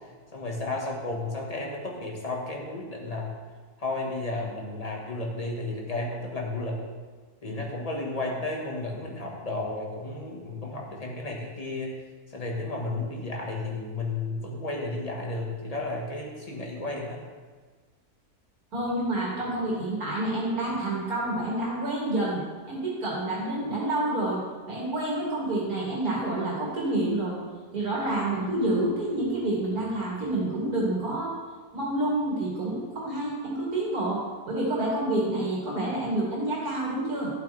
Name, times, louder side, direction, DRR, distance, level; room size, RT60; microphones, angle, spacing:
voice 1, 0.3-3.3 3.8-6.8 7.4-11.9 12.3-17.2, left 2 dB, 25° left, -1 dB, 1.5 m, -33 dB
voice 2, 18.7-22.4 22.7-24.4 24.7-27.4 27.7-31.3 31.7-37.3, right 1 dB, 65° right, -5 dB, 2.4 m, -28 dB
12.0 x 8.1 x 3.4 m, 1.5 s
omnidirectional pair, 1.7 m